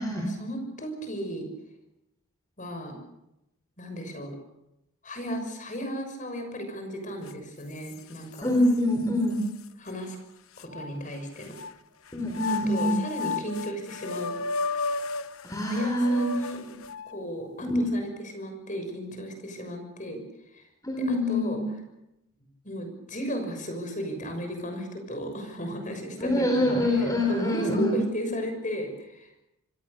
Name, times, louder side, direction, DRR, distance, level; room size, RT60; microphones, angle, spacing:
voice 1, 0.2-1.5 2.6-3.0 3.8-4.3 5.0-8.5 9.8-10.2 10.6-11.5 12.5-14.7 15.6-16.6 17.1-20.2 20.5-20.7 21.1-21.6 22.6-29.3, equal, 35° left, 5 dB, 6.5 m, -35 dB
sound 1, 7.3-7.4 7.8-8.8 9.4-9.5 10.6-11.7 12.3-17.2, left 4 dB, 70° left, 1.1 m, -33 dB
voice 2, 8.4-9.4 12.1-13.0 15.4-16.3 16.6-16.8 17.6-18.0 20.8-21.7 26.2-27.9, left 1 dB, 15° left, 1 dB, 3.8 m, -25 dB
27.0 x 21.0 x 6.8 m, 0.89 s
head